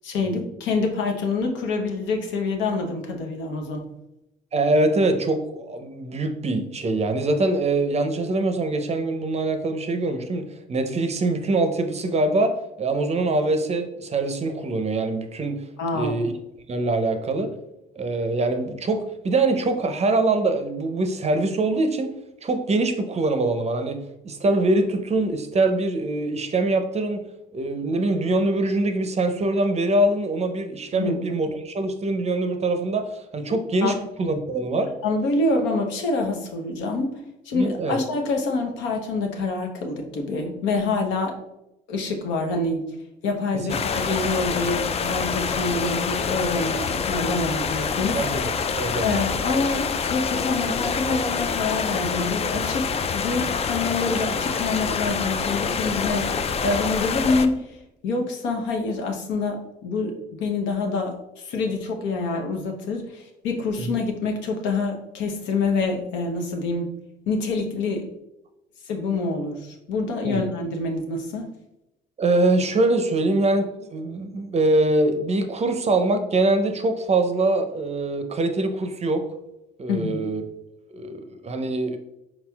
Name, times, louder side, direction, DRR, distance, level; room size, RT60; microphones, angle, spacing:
voice 1, 0.0-3.8 15.8-16.2 30.9-31.2 33.8-34.0 35.0-37.2 37.4-41.3 41.9-42.8 43.2-48.2 49.0-56.3 56.6-57.7 58.0-66.9 67.3-68.1 68.9-71.4 79.9-80.2, left 3 dB, 70° left, 2 dB, 0.8 m, -26 dB
voice 2, 4.5-10.4 10.7-15.6 15.9-16.3 16.7-17.5 18.0-22.1 22.4-27.2 27.5-34.9 37.5-38.0 43.7-43.8 48.1-49.1 63.8-64.0 70.2-70.4 72.2-79.2 79.8-80.4 80.9-82.0, right 2 dB, 35° right, 7 dB, 0.6 m, -23 dB
sound 1, 43.7-57.5, left 5 dB, 30° left, 0.4 m, -26 dB
4.2 x 4.0 x 2.3 m, 0.90 s
hypercardioid pair, 55°, 20 cm